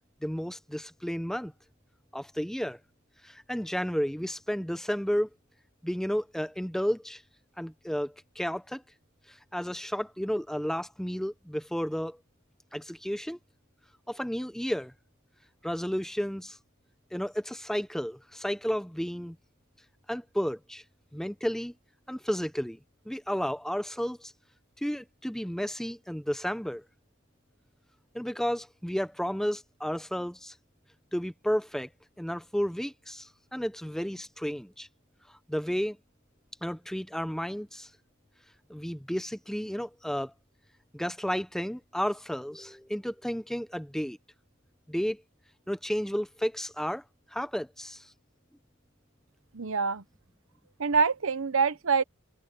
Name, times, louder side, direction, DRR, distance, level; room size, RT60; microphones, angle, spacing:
voice 1, 0.2-1.5 2.1-2.8 3.2-5.3 5.8-7.2 7.6-8.8 9.3-12.2 12.7-13.4 14.1-14.9 15.6-16.6 17.1-19.4 20.1-20.8 21.1-21.7 22.1-22.8 23.1-24.3 24.8-26.8 28.1-30.5 31.1-31.9 32.2-34.9 35.5-36.0 36.6-37.9 38.7-40.3 40.9-44.2 44.9-45.2 45.7-47.0 47.3-48.1, equal, ahead, 0.7 m, -32 dB
voice 2, 49.5-50.0 50.8-52.0, right 5 dB, 65° right, 0.9 m, -25 dB
head